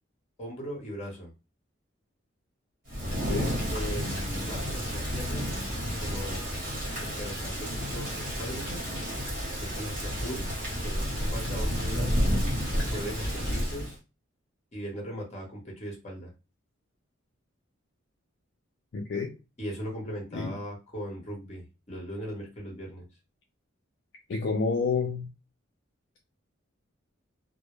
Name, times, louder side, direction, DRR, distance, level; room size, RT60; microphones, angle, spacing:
voice 1, 0.4-1.3 3.7-5.5 6.0-6.4 7.0-8.8 9.6-10.4 10.8-12.3 12.9-14.0 14.7-16.3 19.6-23.1, equal, 35° left, 0.9 m, -39 dB
Thunder / Rain, 2.9-14.0, equal, 45° right, 1.1 m, -31 dB
voice 2, 3.1-3.6 18.9-19.3 20.3-20.6 24.3-25.3, left 4 dB, 55° left, 0.3 m, -29 dB
2.1 x 2.0 x 3.0 m
head